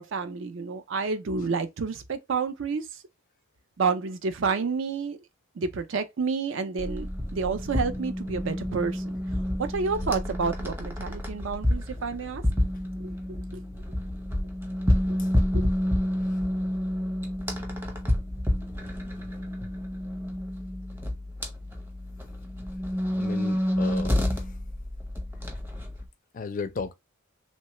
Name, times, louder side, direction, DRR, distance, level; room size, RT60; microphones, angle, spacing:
voice 1, 0.0-2.9 3.8-5.2 5.6-9.1 9.6-12.4 13.0-13.6 15.5-15.7, right 5 dB, 65° right, 0.5 m, -29 dB
sound 1, 6.8-26.1, left 1 dB, 10° right, 0.6 m, -29 dB
voice 2, 23.2-24.6 26.3-26.9, left 4 dB, 40° left, 0.4 m, -35 dB
3.1 x 2.2 x 2.9 m
head